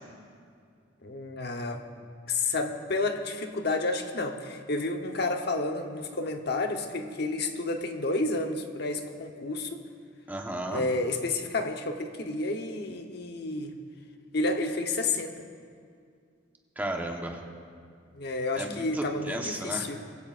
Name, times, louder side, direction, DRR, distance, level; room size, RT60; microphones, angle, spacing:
voice 1, 1.0-9.8 10.7-13.8 14.3-15.4 18.1-20.0, left 2 dB, 60° left, 5 dB, 1.0 m, -30 dB
voice 2, 10.3-10.8 16.8-17.4 18.6-19.8, right 1 dB, 10° right, 1 dB, 1.2 m, -34 dB
21.5 x 15.5 x 2.5 m, 2.2 s
head